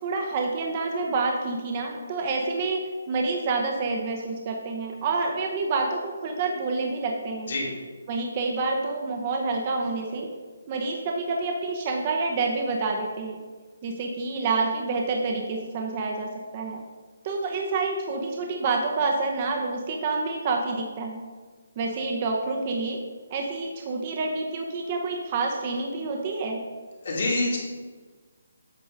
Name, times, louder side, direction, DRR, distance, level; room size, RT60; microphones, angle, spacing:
voice 1, 0.0-7.5 8.1-10.3 10.7-13.4 13.8-16.8 17.2-21.3 21.8-23.0 23.3-26.6, right 3 dB, 30° right, 2 dB, 0.8 m, -28 dB
voice 2, 27.0-27.6, left 2 dB, 65° left, -4 dB, 2.1 m, -25 dB
8.2 x 3.9 x 5.1 m, 1.4 s
hypercardioid pair, 160°, 0 cm